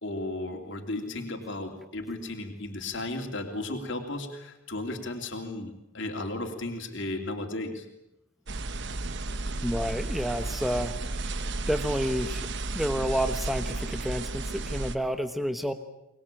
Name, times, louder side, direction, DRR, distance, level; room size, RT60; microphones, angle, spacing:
voice 1, 0.0-7.8, left 2 dB, 55° left, 4 dB, 3.0 m, -35 dB
sound 1, 8.5-15.0, right 2 dB, 50° right, 1.2 m, -33 dB
voice 2, 9.6-11.3 11.7-12.5 12.7-15.7, equal, ahead, 8 dB, 1.1 m, -30 dB
24.5 x 20.5 x 9.0 m, 0.91 s
head